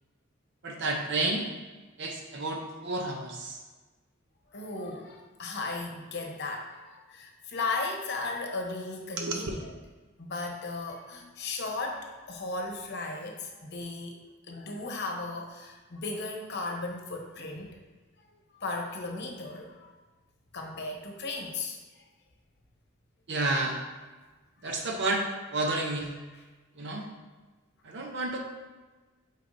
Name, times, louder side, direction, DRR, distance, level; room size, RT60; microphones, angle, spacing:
voice 1, 0.6-1.5 2.0-3.6 9.2-9.5 23.3-23.8 24.6-25.3 25.5-26.1 26.8-27.1 27.8-28.4, right 2 dB, 60° right, 2 dB, 0.7 m, -30 dB
voice 2, 4.5-9.7 10.2-14.2 14.5-17.8 18.6-19.9 20.5-21.8, left 3 dB, 55° left, 2 dB, 0.9 m, -36 dB
8.2 x 4.4 x 2.6 m, 1.3 s
head